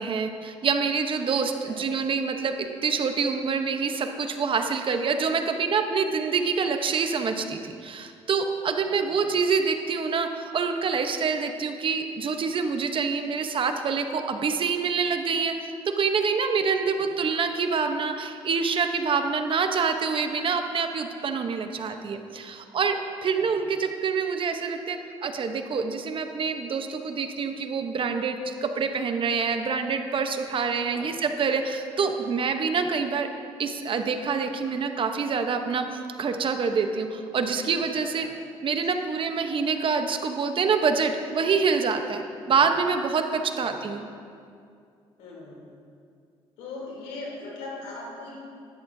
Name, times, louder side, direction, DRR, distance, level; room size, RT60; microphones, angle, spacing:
voice 1, 0.0-2.5 2.8-15.5 15.8-33.3 33.6-38.3 38.6-44.0, right 5 dB, 50° right, 6 dB, 0.9 m, -26 dB
voice 2, 8.9-9.2 16.8-17.0 23.2-23.5 30.9-31.2 37.3-37.6 38.1-38.3 42.4-42.6 43.5-43.8 45.2-45.8 46.6-48.4, left 3 dB, 85° left, -4 dB, 3.1 m, -41 dB
13.5 x 12.5 x 2.7 m, 2.4 s
cardioid pair, 80°, 12 cm